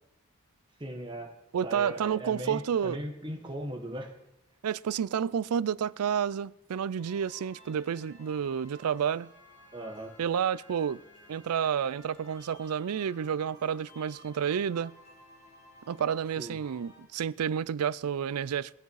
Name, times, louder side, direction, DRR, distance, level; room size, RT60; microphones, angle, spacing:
voice 1, 0.8-1.3 1.6-4.2 9.7-10.1 16.4-16.6, right 1 dB, 20° right, 1.6 m, -38 dB
voice 2, 1.5-3.0 4.6-9.3 10.2-11.0 11.3-14.9 15.9-18.7, right 8 dB, 85° right, 0.4 m, -30 dB
sound 1, 7.0-17.0, left 1 dB, 30° left, 5.9 m, -55 dB
21.0 x 8.1 x 4.8 m
head